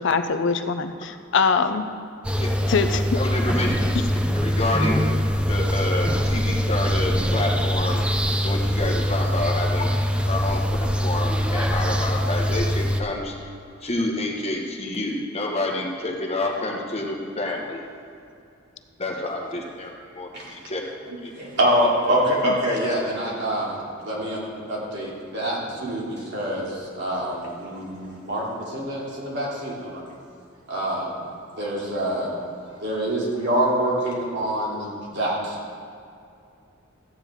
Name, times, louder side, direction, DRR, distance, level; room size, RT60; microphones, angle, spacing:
voice 1, 0.0-1.9 2.7-3.0 22.4-22.5, left 5 dB, 65° left, 9 dB, 0.5 m, -23 dB
sound 1, 2.2-13.0, equal, 5° right, 0.5 m, -23 dB
voice 2, 3.1-3.7 4.4-5.2 5.5-8.0 8.4-9.9 10.3-10.6 11.0-13.4 13.8-17.8 19.0-20.8 21.2-21.3, left 2 dB, 30° left, 0 dB, 1.4 m, -28 dB
voice 3, 21.3-23.8 24.0-30.0 30.7-31.2 31.6-32.3 32.8-35.6, right 1 dB, 60° right, -5 dB, 2.9 m, -25 dB
14.0 x 9.0 x 3.6 m, 2.5 s
head